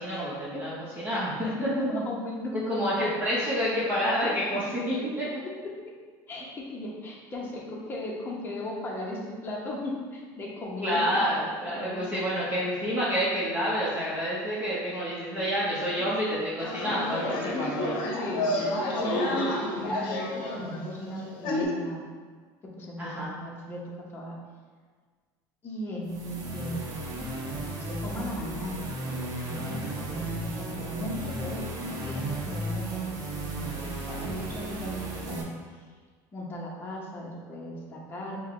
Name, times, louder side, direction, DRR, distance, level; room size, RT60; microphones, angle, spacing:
voice 1, 0.0-1.9 2.5-5.3 10.8-11.4 11.6-18.0 23.0-23.3, equal, 20° right, -9 dB, 1.0 m, -28 dB
voice 2, 1.6-2.5 3.1-3.2 5.0-5.1 5.6-6.0 6.3-11.2 11.6-12.0 17.2-17.7 18.0-22.0 22.8-23.8 24.1-24.3 25.6-27.0 27.5-28.8 29.4-35.4 35.7-35.8 36.3-38.4, left 1 dB, 25° left, -3 dB, 0.9 m, -37 dB
sound 1, 16.6-21.6, left 1 dB, 60° left, 0.8 m, -30 dB
sound 2, 26.0-35.4, right 1 dB, 40° right, 0.8 m, -34 dB
5.4 x 2.3 x 3.7 m, 1.5 s
cardioid pair, 140°, 9 cm